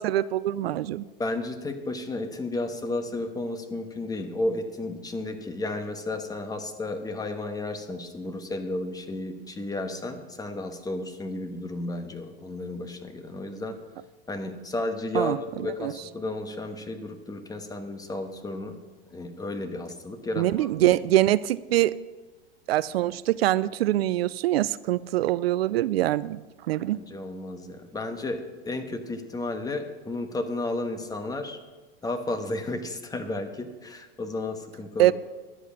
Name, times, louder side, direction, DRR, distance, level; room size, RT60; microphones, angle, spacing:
voice 1, 0.0-1.0 15.1-15.4 15.8-15.9 20.4-21.9 22.7-27.0 35.0-35.1, right 14 dB, 80° right, 19 dB, 0.5 m, -24 dB
voice 2, 1.2-13.8 14.3-18.8 19.1-20.9 26.9-31.6 32.0-35.1, left 2 dB, 10° left, 7 dB, 1.2 m, -33 dB
11.0 x 8.1 x 6.2 m, 1.3 s
hypercardioid pair, 105°, 30 cm